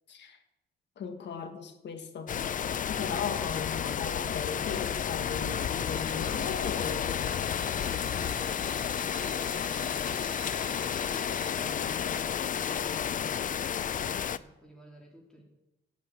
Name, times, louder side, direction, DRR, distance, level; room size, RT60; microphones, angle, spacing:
voice 1, 1.0-2.3 2.9-7.4, left 6 dB, 65° left, 7 dB, 1.9 m, -37 dB
sound 1, 2.3-14.4, left 8 dB, 40° left, 0.5 m, -31 dB
sound 2, 5.8-11.5, right 12 dB, 90° right, 1.0 m, -50 dB
voice 2, 7.8-15.4, equal, 5° left, -3 dB, 3.9 m, -52 dB
12.0 x 6.3 x 8.5 m, 0.96 s
cardioid pair, 90°, 20 cm